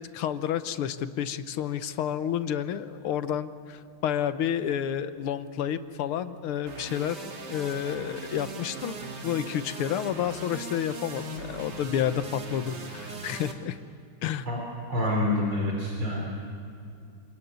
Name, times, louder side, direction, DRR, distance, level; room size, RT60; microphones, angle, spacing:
voice 1, 0.0-7.2 7.5-9.0 9.2-13.8 14.2-14.5, left 9 dB, 85° left, 12 dB, 1.8 m, -30 dB
sound 1, 6.7-13.5, right 2 dB, 50° right, 2.7 m, -39 dB
voice 2, 14.9-16.2, left 1 dB, 70° right, -1 dB, 4.7 m, -27 dB
27.5 x 20.5 x 9.5 m, 2.5 s
omnidirectional pair, 2.3 m